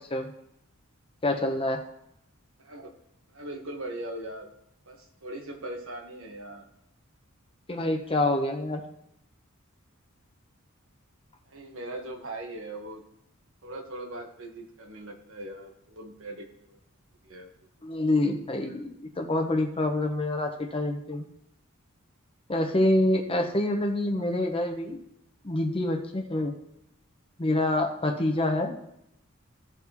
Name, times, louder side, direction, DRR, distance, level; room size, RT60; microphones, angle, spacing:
voice 1, 1.2-1.8 7.7-8.8 17.8-21.2 22.5-25.0 25.4-26.5 27.4-28.8, left 1 dB, 25° left, 4 dB, 0.9 m, -26 dB
voice 2, 2.6-3.0 3.3-4.5 4.9-6.7 11.5-13.0 13.6-16.8 17.2-17.5, right 1 dB, 70° right, 3 dB, 1.4 m, -40 dB
15.5 x 5.9 x 3.0 m, 0.79 s
head